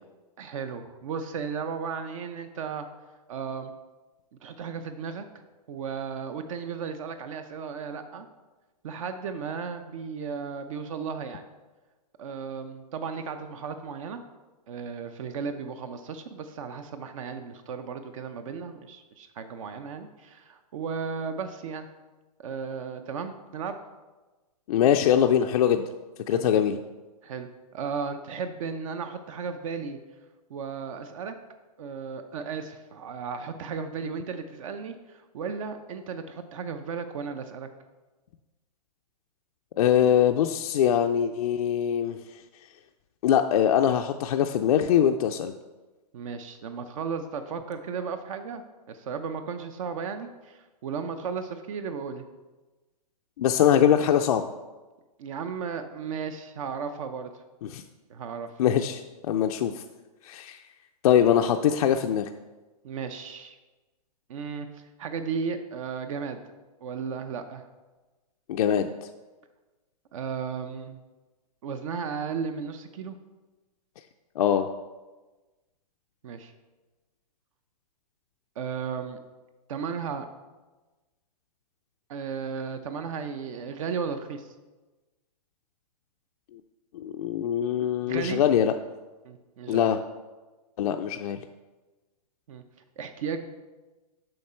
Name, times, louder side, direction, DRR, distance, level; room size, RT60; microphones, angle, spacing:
voice 1, 0.4-2.9 3.3-3.7 4.4-5.3 5.7-8.3 8.8-11.4 12.2-14.2 14.7-21.9 22.4-23.8 26.3-26.6 27.2-30.0 30.5-31.4 31.8-37.7 46.1-48.6 48.9-52.2 55.2-57.3 58.1-58.5 62.8-63.6 64.3-66.4 66.8-67.6 70.1-71.0 71.6-73.2 76.2-76.5 78.6-79.2 79.7-80.3 82.1-84.5 88.1-88.4 89.2-90.0 92.5-92.6 93.0-93.5, right 6 dB, 50° right, 8 dB, 0.6 m, -35 dB
voice 2, 24.7-25.9 26.3-26.8 39.8-42.2 43.2-45.5 53.4-54.5 57.6-57.8 58.6-59.8 60.2-60.6 61.0-62.3 68.5-68.9 74.4-74.7 86.5-86.6 86.9-88.7 89.7-90.0 90.8-91.4, left 9 dB, 60° left, 5 dB, 0.4 m, -22 dB
7.8 x 5.4 x 4.3 m, 1.2 s
hypercardioid pair, 150°, 21 cm